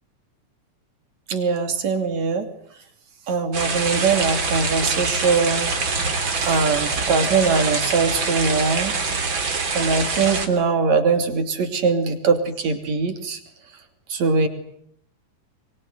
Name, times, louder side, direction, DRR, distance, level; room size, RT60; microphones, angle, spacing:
voice 1, 1.3-2.5 3.3-5.7 6.4-8.9 9.8-13.4 14.1-14.5, right 4 dB, 60° right, 7 dB, 4.2 m, -21 dB
sound 1, 3.5-10.5, right 4 dB, 40° right, 3.7 m, -25 dB
24.5 x 24.0 x 9.4 m, 0.69 s
omnidirectional pair, 3.6 m